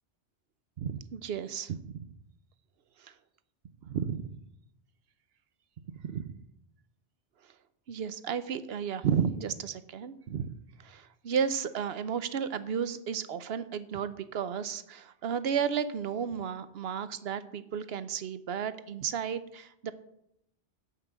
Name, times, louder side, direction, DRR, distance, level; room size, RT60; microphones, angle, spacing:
voice 1, 0.8-2.0 3.8-4.3 6.0-6.4 7.9-10.5 10.8-19.9, right 7 dB, 65° right, 13 dB, 0.9 m, -33 dB
11.0 x 5.9 x 8.0 m, 0.78 s
omnidirectional pair, 1.2 m